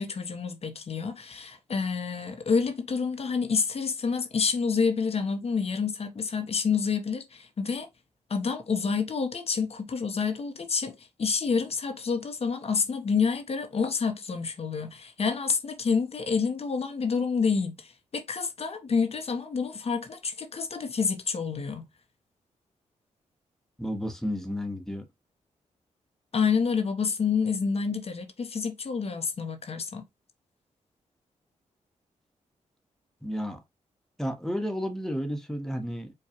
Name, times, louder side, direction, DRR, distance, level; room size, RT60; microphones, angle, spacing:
voice 1, 0.0-7.9 8.3-21.9 26.3-30.0, left 5 dB, 50° left, 0.8 m, -28 dB
voice 2, 23.8-25.0 33.2-33.6 34.2-36.1, equal, 5° left, 1.0 m, -32 dB
4.7 x 2.3 x 2.8 m
cardioid pair, 60°, 13 cm